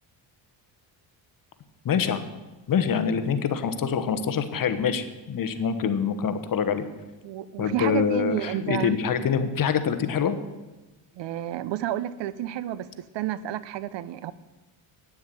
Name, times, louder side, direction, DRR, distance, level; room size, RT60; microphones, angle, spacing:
voice 1, 1.8-2.2 2.7-6.9 7.6-10.4, left 7 dB, 45° left, 10 dB, 1.1 m, -25 dB
voice 2, 7.2-8.9 11.1-12.9 13.1-14.3, right 12 dB, 65° right, 17 dB, 0.7 m, -30 dB
9.7 x 7.2 x 7.5 m, 1.1 s
cardioid pair, 105°, 47 cm